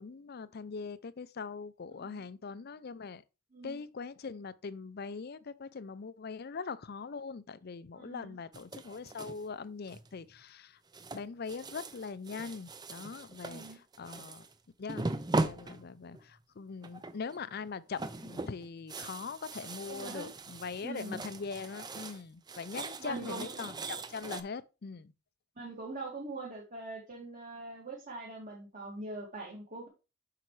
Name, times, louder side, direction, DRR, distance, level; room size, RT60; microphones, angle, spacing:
voice 1, 0.0-3.2 3.6-10.8 11.1-14.5 14.8-15.1 15.4-25.1, left 5 dB, 50° left, 0.5 m, -42 dB
voice 2, 1.9-2.2 3.5-3.8 7.9-8.4 13.4-13.8 19.9-20.3 20.8-21.2 23.0-23.7 25.6-29.9, right 2 dB, 40° right, 2.0 m, -43 dB
sound 1, 8.5-9.4 9.9-10.3 10.9-14.5 14.9-16.3 16.8-17.4 17.6-22.2 22.5-24.4, right 2 dB, 20° right, 0.5 m, -39 dB
8.3 x 5.8 x 3.2 m
head